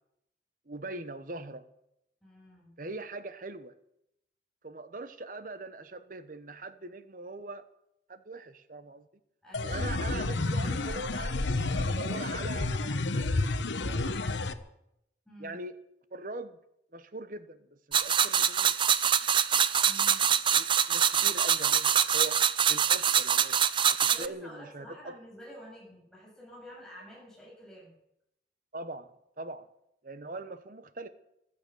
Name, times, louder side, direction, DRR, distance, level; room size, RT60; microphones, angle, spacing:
voice 1, 0.7-1.6 2.8-3.7 4.6-7.6 8.1-9.1 9.6-13.2 13.8-14.1 15.4-15.8 16.1-16.6 16.9-18.7 20.5-22.4 22.7-23.6 24.2-25.1 28.7-29.1 29.4-29.7 30.0-31.1, right 2 dB, 45° right, 12 dB, 1.0 m, -41 dB
voice 2, 2.2-2.8 9.4-9.9 15.3-15.6 19.8-20.3 24.0-28.0, equal, 5° left, -5 dB, 7.3 m, -49 dB
sound 1, 9.5-14.5, left 2 dB, 85° left, 1.0 m, -30 dB
sound 2, 17.9-24.3, right 8 dB, 25° right, 0.5 m, -25 dB
15.5 x 12.5 x 7.0 m, 0.81 s
head